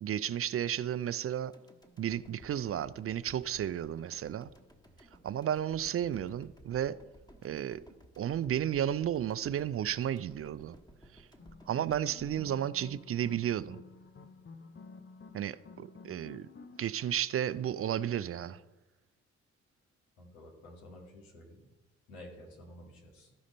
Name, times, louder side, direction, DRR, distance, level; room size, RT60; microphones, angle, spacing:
voice 1, 0.0-1.5 2.0-4.5 5.2-7.0 7.4-7.8 8.2-10.8 11.1-11.3 11.7-13.8 15.3-16.5 16.8-18.6, right 10 dB, 40° right, 0.4 m, -33 dB
sound 1, 1.5-13.8 14.1-14.2, right 1 dB, 10° left, 1.5 m, -57 dB
sound 2, 11.4-18.0, left 4 dB, 35° left, 0.7 m, -52 dB
voice 2, 20.2-21.7 22.1-23.3, left 1 dB, 85° left, 1.9 m, -51 dB
13.5 x 5.0 x 4.2 m
hypercardioid pair, 40°, 34 cm